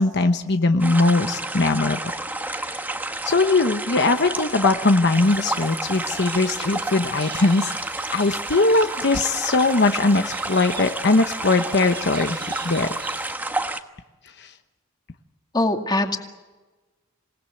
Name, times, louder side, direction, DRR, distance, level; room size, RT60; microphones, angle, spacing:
voice 1, 0.0-2.0 2.5-2.8 3.2-7.7 8.1-12.9 14.4-14.5, left 3 dB, 55° left, 7 dB, 1.0 m, -20 dB
sound 1, 0.8-13.8, right 2 dB, 10° right, 1.3 m, -30 dB
sound 2, 5.1-13.3, right 6 dB, 55° right, 4.0 m, -41 dB
voice 2, 15.5-16.2, left 2 dB, 20° left, 4 dB, 2.3 m, -22 dB
27.5 x 18.5 x 9.1 m, 1.2 s
head